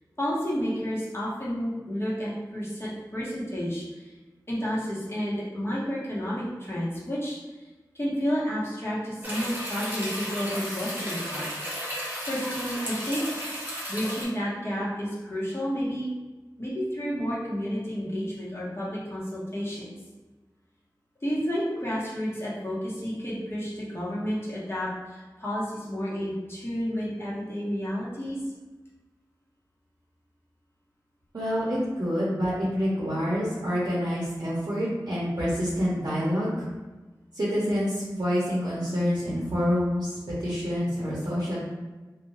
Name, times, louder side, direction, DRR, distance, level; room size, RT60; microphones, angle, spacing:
voice 1, 0.2-4.1 4.5-7.4 7.9-11.5 12.3-13.2 13.9-16.1 16.6-19.9 21.2-28.4, equal, 30° left, -8 dB, 1.1 m, -31 dB
sound 1, 9.2-14.2, equal, 20° right, 1.1 m, -34 dB
voice 2, 31.3-36.6 37.3-41.6, equal, 55° right, -7 dB, 0.8 m, -27 dB
2.5 x 2.2 x 3.3 m, 1.2 s
wide cardioid pair, 40°, 8 cm